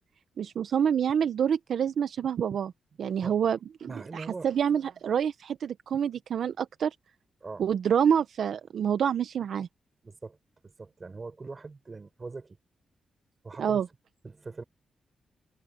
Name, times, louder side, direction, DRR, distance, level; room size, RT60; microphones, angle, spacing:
voice 1, 0.4-2.7 3.0-6.9 7.6-9.7 13.6-13.9, right 8 dB, 70° right, 0.7 m, -27 dB
voice 2, 3.8-4.5 7.4-7.7 10.0-10.4 10.6-12.6 13.4-13.8 14.2-14.6, right 3 dB, 35° right, 7.1 m, -42 dB
cardioid pair, 90°, 0 cm